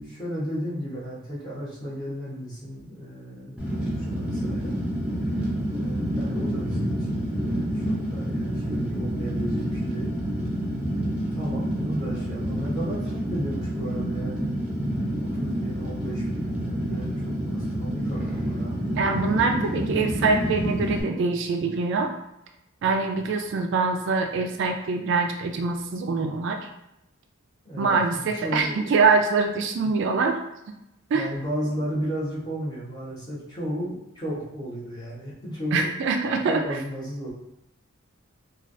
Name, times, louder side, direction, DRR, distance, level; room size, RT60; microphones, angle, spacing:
voice 1, 0.0-4.8 5.7-10.1 11.1-14.5 15.2-18.8 27.6-28.9 29.8-30.0 31.1-35.9 36.4-37.3, equal, 20° left, -8 dB, 1.0 m, -34 dB
Fire, 3.6-21.0, equal, 5° right, 0.5 m, -28 dB
voice 2, 19.0-22.1 22.8-26.6 27.8-30.4 31.1-31.3 35.7-36.6, right 4 dB, 60° right, 4 dB, 0.3 m, -24 dB
3.2 x 2.3 x 2.6 m, 0.86 s
head